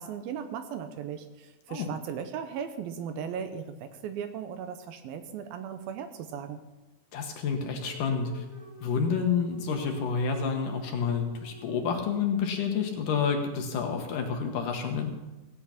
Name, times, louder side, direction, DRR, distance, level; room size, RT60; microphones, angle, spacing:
voice 1, 0.0-6.6, right 7 dB, 75° right, 9 dB, 2.4 m, -37 dB
voice 2, 7.1-8.4 8.8-15.1, left 6 dB, 65° left, 3 dB, 2.5 m, -29 dB
sound 1, 7.7-13.0, right 2 dB, 10° right, 2.7 m, -49 dB
17.0 x 8.7 x 5.8 m, 1.1 s
omnidirectional pair, 4.5 m